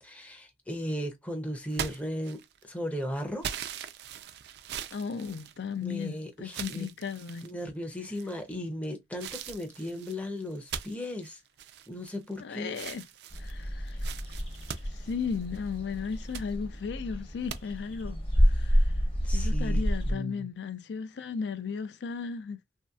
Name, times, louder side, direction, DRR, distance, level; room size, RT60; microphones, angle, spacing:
voice 1, 0.0-3.4 5.8-6.9 7.4-11.4 11.9-12.8 19.2-20.5, equal, 10° left, 0.5 m, -36 dB
sound 1, 1.7-2.7 3.4-6.0 6.5-7.5 8.1-8.6 9.2-12.4 12.7-15.7 16.1-16.5 17.5-17.6, right 8 dB, 70° right, 0.4 m, -40 dB
voice 2, 4.9-7.5 12.4-13.1 13.4-14.1 14.9-18.2 18.4-18.9 19.3-22.6, left 6 dB, 75° left, 0.4 m, -35 dB
sound 2, 13.3-20.1, equal, 30° left, 0.8 m, -29 dB
3.1 x 2.7 x 2.2 m
head